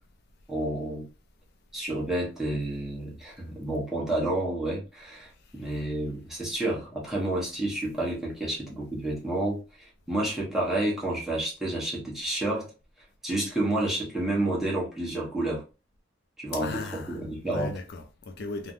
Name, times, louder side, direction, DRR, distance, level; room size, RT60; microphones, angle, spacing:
voice 1, 0.5-1.1 1.7-9.6 10.1-12.7 13.2-15.6 16.4-17.7, right 1 dB, ahead, 1.1 m, -30 dB
voice 2, 16.5-18.7, left 3 dB, 55° left, 0.4 m, -37 dB
3.3 x 2.2 x 2.6 m
head